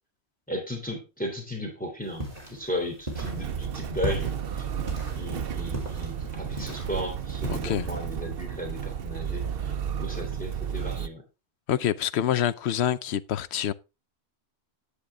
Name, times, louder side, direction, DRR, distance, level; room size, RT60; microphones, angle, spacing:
voice 1, 0.5-4.3 5.2-11.2, equal, 5° left, 3.2 m, -35 dB
sound 1, 2.1-7.5, equal, 35° right, 3.4 m, -38 dB
Motor vehicle (road), 3.1-11.1, right 8 dB, 60° right, 0.9 m, -32 dB
voice 2, 7.5-7.9 11.7-13.7, left 10 dB, 75° left, 0.9 m, -26 dB
10.5 x 8.5 x 3.6 m
omnidirectional pair, 1.1 m